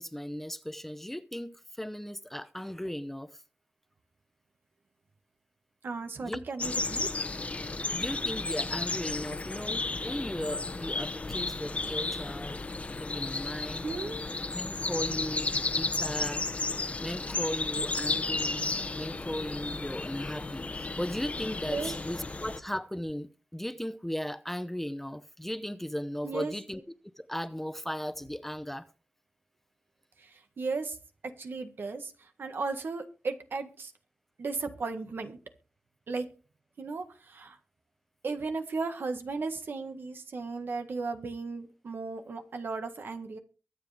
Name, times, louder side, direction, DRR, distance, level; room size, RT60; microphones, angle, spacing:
voice 1, 0.0-3.3 6.2-6.4 7.9-12.6 13.0-13.9 14.5-16.4 17.0-26.8 27.2-28.9, equal, 5° left, 0.7 m, -37 dB
voice 2, 5.8-7.1 13.8-14.2 21.7-21.9 26.2-26.5 30.2-31.0 31.2-33.9 34.4-35.4 36.1-36.3 36.8-37.6 38.2-43.4, right 4 dB, 75° right, 1.7 m, -35 dB
sound 1, 6.6-22.6, left 3 dB, 40° left, 1.0 m, -33 dB
23.5 x 8.0 x 3.5 m
wide cardioid pair, 125°, 4 cm